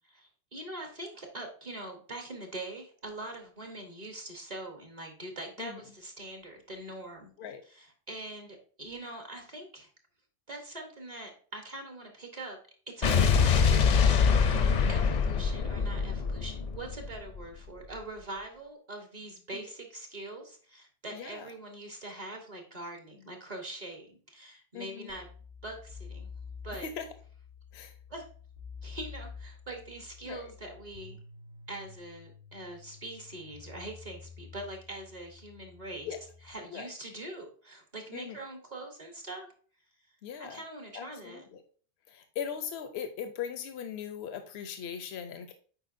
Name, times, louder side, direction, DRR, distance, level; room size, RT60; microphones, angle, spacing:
voice 1, 0.0-7.3 7.7-9.9 10.5-12.6 12.9-26.3 26.6-26.9 28.1-28.3 28.8-31.2 31.7-36.1 36.4-39.5 40.4-41.5, right 1 dB, 40° right, 3 dB, 1.1 m, -43 dB
Explosion, 13.0-17.4, left 6 dB, 50° left, 0.6 m, -24 dB
voice 2, 21.1-21.5 24.7-25.1 26.8-27.0 27.7-27.9 30.3-30.5 36.1-36.2 36.7-36.9 38.1-38.4 40.2-40.6 40.9-41.6 42.1-45.5, left 8 dB, 85° left, 8 dB, 0.9 m, -39 dB
sound 1, 25.1-36.5, left 5 dB, 70° right, 2.3 m, -49 dB
7.9 x 4.7 x 2.5 m, 0.42 s
omnidirectional pair, 1.1 m